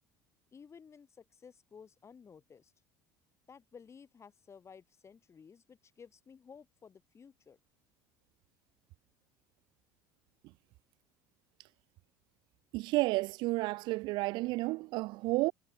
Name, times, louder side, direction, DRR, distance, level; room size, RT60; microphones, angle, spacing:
voice 1, 0.5-2.7 3.5-7.6, left 6 dB, 30° left, 3.1 m, -55 dB
voice 2, 12.7-15.5, right 21 dB, 55° right, 0.5 m, -31 dB
figure-of-eight pair, 65°, 10 cm